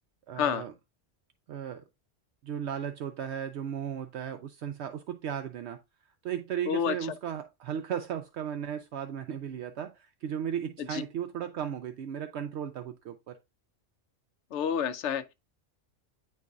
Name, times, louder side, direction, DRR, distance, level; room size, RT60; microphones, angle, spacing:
voice 1, 0.3-0.7 1.5-1.8 2.4-5.8 6.2-13.4, right 9 dB, 70° right, 0.8 m, -35 dB
voice 2, 14.5-15.3, left 8 dB, 75° left, 0.9 m, -29 dB
9.2 x 4.6 x 2.4 m
omnidirectional pair, 1.2 m